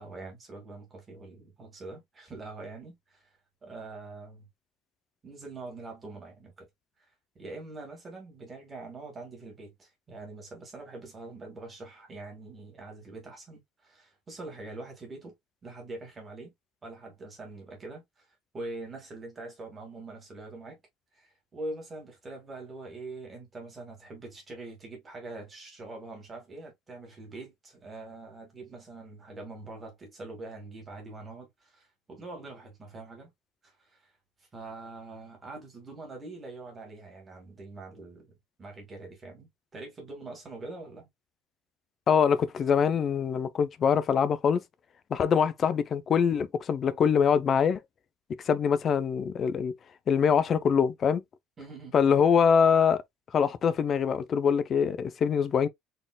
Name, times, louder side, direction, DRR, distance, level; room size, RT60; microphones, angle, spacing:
voice 1, 0.0-3.3 3.6-4.5 5.2-6.7 7.0-7.1 7.4-15.3 15.6-16.5 16.8-18.3 18.5-20.8 21.1-33.3 33.6-34.1 34.5-41.1 51.6-51.9, right 2 dB, 20° right, 2.0 m, -44 dB
voice 2, 42.1-44.6 45.1-47.8 48.5-49.7 50.1-51.2 51.9-53.0 53.3-55.7, left 7 dB, 30° left, 0.4 m, -24 dB
4.2 x 3.7 x 2.2 m
cardioid pair, 160°, 0 cm